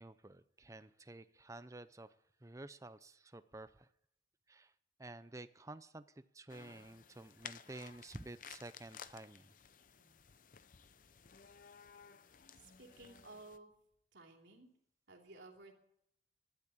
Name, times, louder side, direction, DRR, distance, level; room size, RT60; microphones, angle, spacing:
voice 1, 0.0-2.1 2.4-3.9 4.5-4.7 5.0-6.0 6.3-9.5, right 2 dB, 15° right, 13 dB, 0.6 m, -51 dB
sound 1, 6.5-13.6, left 8 dB, 50° left, 0.6 m, -56 dB
voice 2, 12.6-13.7 14.1-14.7 15.1-15.7, right 2 dB, 90° right, 1 dB, 3.0 m, -56 dB
12.0 x 11.5 x 8.5 m, 0.75 s
head